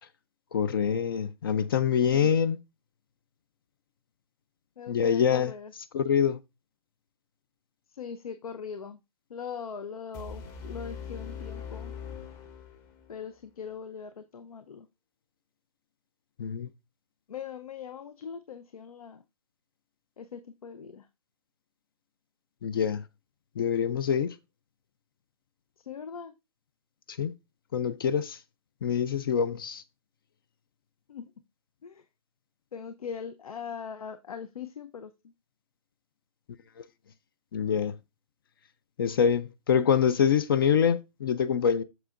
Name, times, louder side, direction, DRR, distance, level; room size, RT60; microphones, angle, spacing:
voice 1, 0.5-2.6 4.9-5.5 5.9-6.4 16.4-16.7 22.6-23.0 23.6-24.3 27.2-27.3 27.7-28.4 28.8-29.8 37.5-38.0 39.0-41.8, left 7 dB, 40° left, 0.4 m, -25 dB
voice 2, 4.8-5.7 7.9-9.0 9.3-11.9 13.1-14.9 17.3-19.2 20.2-21.1 25.9-26.3 31.1-31.3 31.8-32.0 32.7-35.1, left 6 dB, 80° left, 0.7 m, -40 dB
sound 1, 10.1-13.1, left 6 dB, 20° left, 0.8 m, -41 dB
7.8 x 6.8 x 2.5 m
hypercardioid pair, 155°, 18 cm